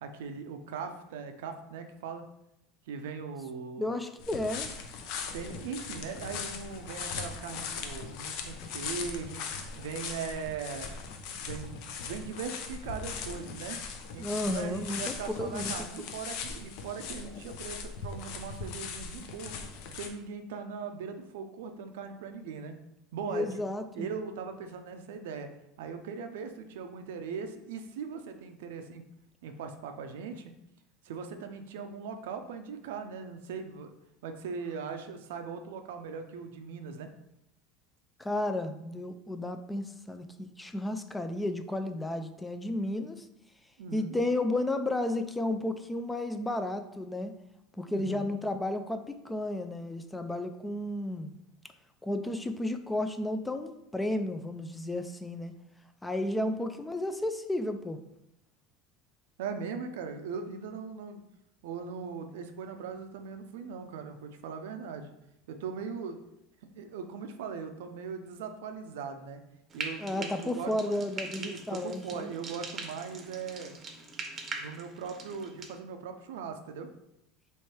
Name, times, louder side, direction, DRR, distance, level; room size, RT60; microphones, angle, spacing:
voice 1, 0.0-2.2 2.9-3.9 5.3-9.4 9.8-10.9 11.3-11.8 12.0-13.8 14.1-19.5 19.9-22.8 23.1-23.7 23.9-25.5 25.8-29.0 29.4-30.5 31.0-33.9 34.2-37.1 43.8-44.2 47.9-48.3 59.4-61.2 61.6-65.1 65.5-66.2 66.8-69.4 69.7-71.1 71.4-73.7 74.6-76.9, right 5 dB, 85° right, 7 dB, 0.5 m, -39 dB
voice 2, 3.8-4.7 14.2-15.7 23.3-24.1 38.2-43.3 43.9-47.3 47.8-51.3 52.0-55.5 56.0-58.0 70.0-72.3, left 1 dB, 10° left, 8 dB, 0.3 m, -33 dB
sound 1, 4.2-20.1, left 5 dB, 65° left, 0.6 m, -39 dB
Frying (food), 69.7-75.7, right 3 dB, 30° right, 0.7 m, -42 dB
3.2 x 3.1 x 4.4 m, 0.83 s
supercardioid pair, 125°, 0 cm